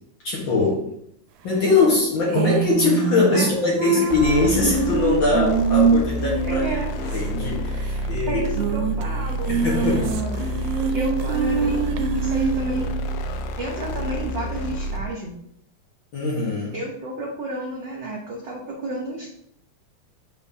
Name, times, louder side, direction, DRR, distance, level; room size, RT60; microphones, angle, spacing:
voice 1, 0.2-0.9 1.4-6.8 7.1-8.4 9.5-10.2 16.1-16.8, left 3 dB, 50° left, -4 dB, 1.7 m, -22 dB
Soft Lullaby in Spanish, 2.3-7.2 7.5-7.6 7.8-7.9 8.5-9.0 9.4-13.0, right 6 dB, 85° right, 2.0 m, -24 dB
sound 1, 4.1-15.2, right 2 dB, 85° left, 2.0 m, -28 dB
voice 2, 6.4-6.9 8.3-10.4 10.9-12.9 13.6-15.4 16.7-19.3, right 1 dB, 70° right, -2 dB, 1.1 m, -31 dB
7.1 x 5.4 x 2.7 m, 0.72 s
omnidirectional pair, 3.3 m